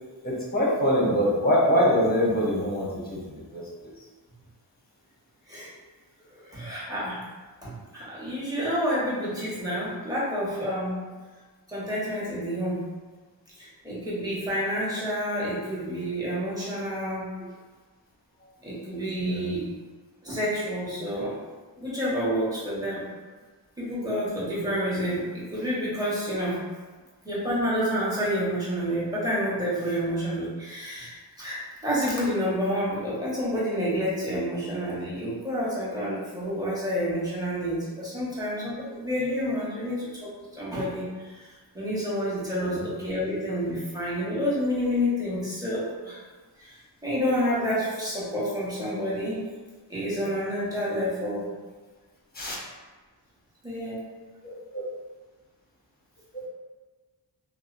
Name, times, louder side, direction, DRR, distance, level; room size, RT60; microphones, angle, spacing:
voice 1, 0.2-3.9 13.9-14.0 17.4-17.5 19.2-19.5 42.6-42.8 52.3-52.6 54.4-54.8, equal, 20° left, -4 dB, 0.8 m, -25 dB
voice 2, 6.3-7.2 7.6-11.0 11.7-12.9 13.6-17.3 18.6-19.7 20.2-21.4 21.8-23.0 23.8-26.6 27.2-46.2 46.6-46.8 47.0-49.4 49.9-51.4 53.6-54.0, equal, 10° right, -9 dB, 1.2 m, -29 dB
2.6 x 2.1 x 2.5 m, 1.4 s
cardioid pair, 45°, 44 cm